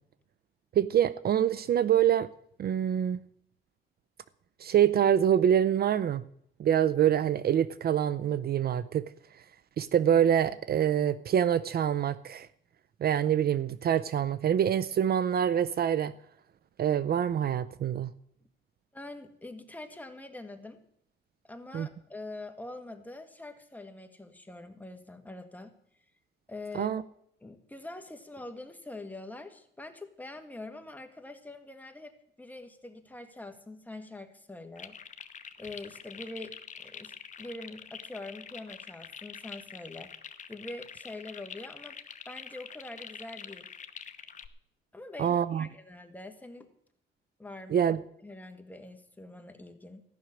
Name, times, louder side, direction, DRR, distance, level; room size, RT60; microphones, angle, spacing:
voice 1, 0.8-2.3 2.6-3.2 4.6-6.2 6.6-9.1 9.8-12.5 13.0-16.1 16.8-18.1 21.7-21.9 26.7-27.0 45.2-45.7 47.7-48.0, right 9 dB, 50° right, 16 dB, 0.5 m, -25 dB
voice 2, 18.9-20.8 21.4-25.7 26.5-26.9 27.4-35.0 35.6-40.1 40.5-42.0 42.3-43.7 44.9-46.7 47.4-47.8 48.2-50.0, left 2 dB, 10° left, 6 dB, 1.7 m, -44 dB
sound 1, 34.8-44.5, left 6 dB, 40° left, 0.9 m, -46 dB
14.5 x 6.2 x 9.9 m, 0.71 s
cardioid pair, 90°, 20 cm